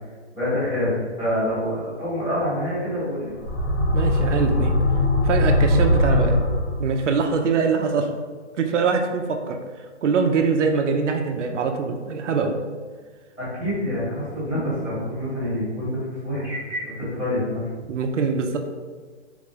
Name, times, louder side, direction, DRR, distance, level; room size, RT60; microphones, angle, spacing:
voice 1, 0.3-3.3 13.4-17.7, left 1 dB, 5° left, -19 dB, 0.8 m, -26 dB
sound 1, 3.3-7.1, left 1 dB, 80° left, 1.2 m, -20 dB
voice 2, 3.9-4.7 5.2-6.4 6.8-8.1 8.6-9.6 10.0-12.6 17.9-18.6, right 5 dB, 80° right, 4 dB, 0.6 m, -23 dB
3.7 x 2.4 x 3.0 m, 1.5 s
hypercardioid pair, 180°, 36 cm